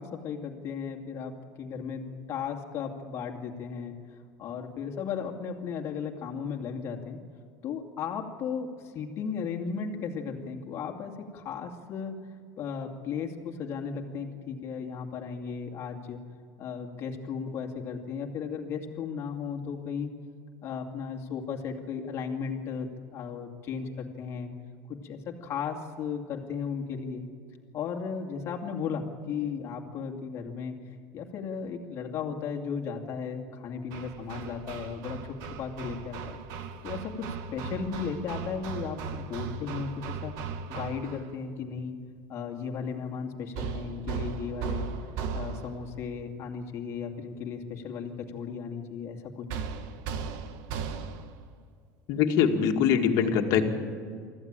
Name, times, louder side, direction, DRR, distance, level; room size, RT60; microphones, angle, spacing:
voice 1, 0.0-3.9 4.4-7.2 7.6-8.7 8.9-12.2 12.6-16.2 16.6-20.1 20.6-24.5 24.9-27.2 27.7-30.7 31.1-36.4 36.8-40.3 40.7-42.0 42.3-44.9 45.3-49.6, left 6 dB, 40° left, 2 dB, 2.4 m, -35 dB
Hammer, 33.9-41.3 43.5-46.0 49.5-51.4, right 6 dB, 60° right, 1.3 m, -37 dB
voice 2, 52.1-53.6, left 7 dB, 55° left, 3 dB, 2.2 m, -23 dB
24.5 x 14.5 x 8.9 m, 2.1 s
cardioid pair, 155°, 7 cm